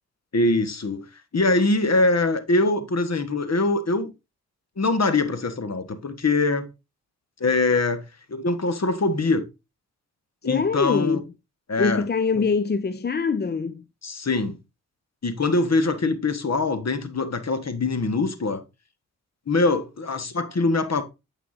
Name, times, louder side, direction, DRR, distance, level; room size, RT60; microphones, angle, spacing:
voice 1, 0.3-1.1 1.3-4.1 4.8-6.7 7.4-9.4 10.4-11.2 11.7-12.0 14.0-14.6 15.2-18.6 19.5-21.0, left 3 dB, 40° left, 1.6 m, -23 dB
voice 2, 10.4-11.3 11.8-13.8, left 5 dB, 25° left, 0.5 m, -24 dB
8.5 x 5.7 x 2.7 m
supercardioid pair, 45°, 38 cm